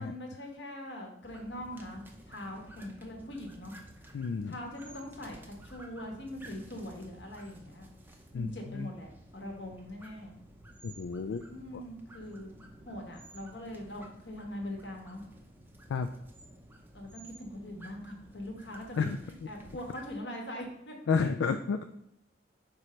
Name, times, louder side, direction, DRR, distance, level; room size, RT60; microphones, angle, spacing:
voice 1, 0.0-3.7 4.4-7.9 8.3-10.4 11.5-12.5 12.8-15.2 16.9-20.9, left 1 dB, 65° left, 1 dB, 1.3 m, -42 dB
sound 1, 1.2-20.2, right 1 dB, 10° right, 0.5 m, -53 dB
voice 2, 4.1-4.6 8.3-8.5 8.7-8.9 10.8-11.4 11.7-11.8 15.9-16.1 19.0-19.2 21.1-21.8, left 5 dB, 80° left, 8 dB, 0.3 m, -30 dB
4.7 x 4.3 x 5.1 m, 0.77 s
head